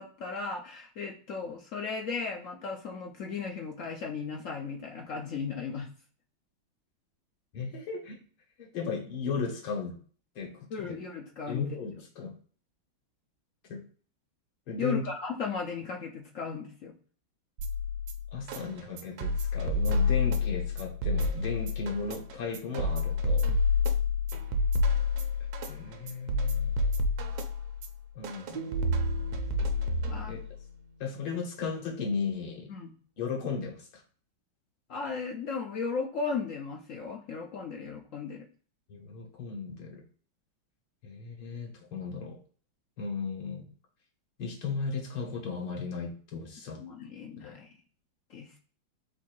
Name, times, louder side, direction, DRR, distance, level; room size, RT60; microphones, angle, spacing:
voice 1, 0.0-5.9 10.7-11.8 14.8-16.9 30.1-30.3 32.7-32.9 34.9-38.4 46.7-47.7 48.3-48.6, left 5 dB, 70° left, 1 dB, 0.7 m, -36 dB
voice 2, 7.5-8.2 8.6-10.0 10.4-11.0 11.5-12.3 13.7-13.8 14.7-15.1 18.3-23.5 25.7-26.8 28.2-28.7 30.3-30.4 31.0-32.7 33.2-34.0 38.9-40.0 41.0-42.4 43.0-43.7 44.4-46.8 47.4-47.6, left 5 dB, 85° left, 0 dB, 2.2 m, -35 dB
sound 1, 17.6-30.6, left 3 dB, 80° right, 1.5 m, -29 dB
sound 2, 28.5-31.7, right 5 dB, 45° right, 0.6 m, -45 dB
4.3 x 2.7 x 4.4 m, 0.43 s
omnidirectional pair, 2.2 m